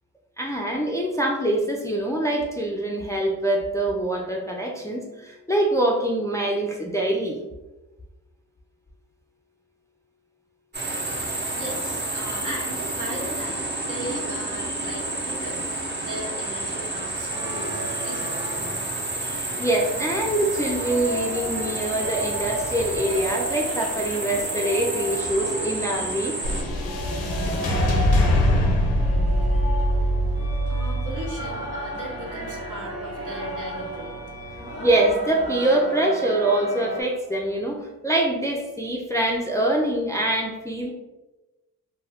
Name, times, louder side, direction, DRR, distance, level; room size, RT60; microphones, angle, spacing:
voice 1, 0.4-7.4 19.6-26.3 34.6-40.9, right 1 dB, 10° left, -1 dB, 0.4 m, -24 dB
sound 1, 10.7-26.6, right 2 dB, 30° right, 0.8 m, -30 dB
voice 2, 11.6-18.5 30.7-34.1, right 1 dB, 55° right, -1 dB, 0.9 m, -37 dB
sound 2, 17.3-37.0, right 1 dB, 85° right, 1.4 m, -36 dB
Action Cue, 26.4-34.8, equal, 90° left, 0.6 m, -24 dB
2.3 x 2.2 x 3.4 m, 1.1 s
supercardioid pair, 45°, 37 cm